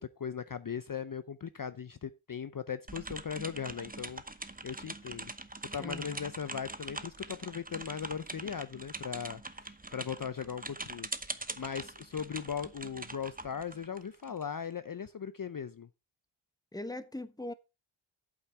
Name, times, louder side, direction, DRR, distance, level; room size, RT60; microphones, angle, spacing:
voice 1, 0.0-4.2 4.6-5.3 5.7-15.9, left 7 dB, 45° left, 0.6 m, -39 dB
sound 1, 2.9-14.4, right 2 dB, 20° right, 0.9 m, -43 dB
voice 2, 5.8-6.2 16.7-17.5, left 1 dB, 10° left, 1.1 m, -40 dB
8.6 x 8.3 x 4.4 m
wide cardioid pair, 75°, 48 cm